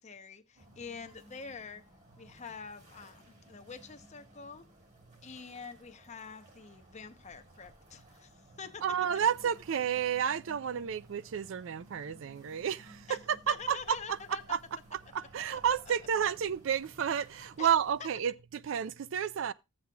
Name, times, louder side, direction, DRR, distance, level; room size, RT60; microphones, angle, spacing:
voice 1, 0.0-1.8 2.2-4.7 5.2-8.8 13.1-13.2 13.5-14.4 17.6-17.7 18.0-18.1, left 5 dB, 35° left, 0.8 m, -46 dB
sound 1, 0.6-18.0, right 1 dB, 35° right, 2.1 m, -58 dB
voice 2, 8.8-13.2 13.5-14.0 14.5-14.6 15.1-19.5, right 8 dB, 65° right, 0.4 m, -31 dB
14.5 x 7.6 x 2.3 m
head